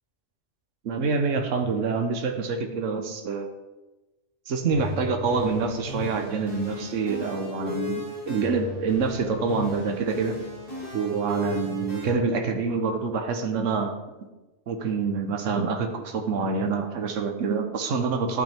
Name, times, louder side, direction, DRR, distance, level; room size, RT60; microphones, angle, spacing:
voice 1, 0.8-3.5 4.5-10.4 10.9-14.0 14.7-18.4, right 4 dB, 75° right, 5 dB, 1.3 m, -26 dB
sound 1, 4.7-12.1, left 2 dB, 45° left, 4.3 m, -36 dB
11.5 x 8.9 x 3.5 m, 1.1 s
omnidirectional pair, 1.3 m